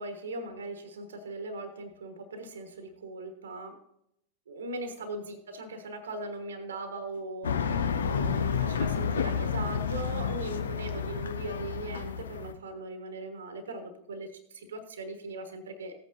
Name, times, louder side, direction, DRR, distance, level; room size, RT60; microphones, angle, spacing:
voice 1, 0.0-3.8 4.5-15.9, right 2 dB, 65° right, 8 dB, 1.2 m, -39 dB
sound 1, 7.4-12.5, left 6 dB, 65° left, 0.6 m, -30 dB
15.5 x 8.7 x 2.6 m, 0.77 s
figure-of-eight pair, 90°, 0 cm